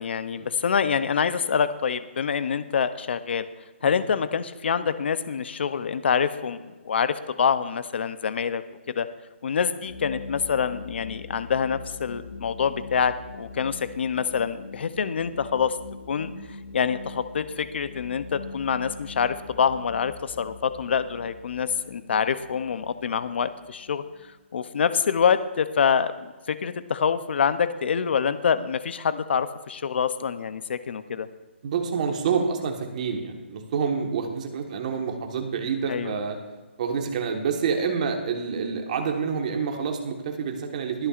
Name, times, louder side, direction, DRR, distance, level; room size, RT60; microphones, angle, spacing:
voice 1, 0.0-3.5 3.8-6.6 6.9-8.6 8.9-9.1 9.4-15.8 16.1-16.3 16.7-24.0 24.5-31.3 35.9-36.1, left 7 dB, 55° left, 13 dB, 0.6 m, -26 dB
sound 1, 9.8-24.2, left 3 dB, 75° left, 3.9 m, -42 dB
voice 2, 31.6-36.4 36.8-41.1, right 6 dB, 35° right, 3 dB, 1.4 m, -28 dB
22.0 x 8.8 x 2.5 m, 1.3 s
hypercardioid pair, 170°, 7 cm